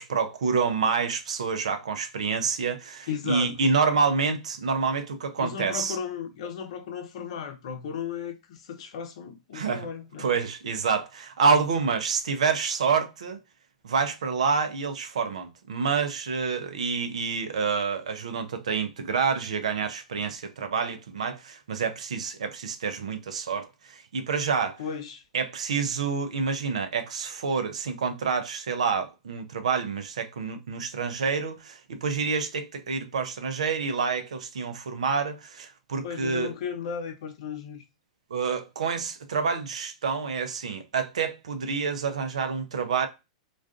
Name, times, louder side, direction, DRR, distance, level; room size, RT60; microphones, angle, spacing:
voice 1, 0.0-6.0 9.5-9.9 10.2-13.4 13.8-24.8 25.3-36.5 38.3-43.1, right 5 dB, 80° right, 0.5 m, -28 dB
voice 2, 3.1-3.5 5.4-10.3 24.8-25.2 36.0-37.8, left 7 dB, 65° left, 0.7 m, -35 dB
2.4 x 2.3 x 2.3 m
hypercardioid pair, 110°, 3 cm